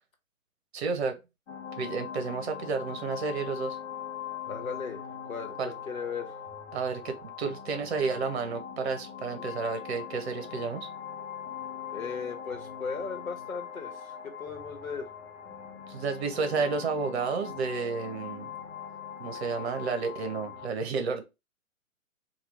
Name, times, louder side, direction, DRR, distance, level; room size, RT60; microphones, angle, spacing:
voice 1, 0.7-1.2 1.8-3.8 5.6-5.7 6.7-10.9 15.9-18.5 19.2-21.2, right 4 dB, 50° right, 0.9 m, -31 dB
sound 1, 1.5-20.7, left 8 dB, 55° left, 0.9 m, -41 dB
voice 2, 4.5-5.0 5.3-6.4 11.9-15.1 16.3-16.8, left 5 dB, 70° left, 1.1 m, -37 dB
2.9 x 2.4 x 3.4 m
figure-of-eight pair, 120°, 42 cm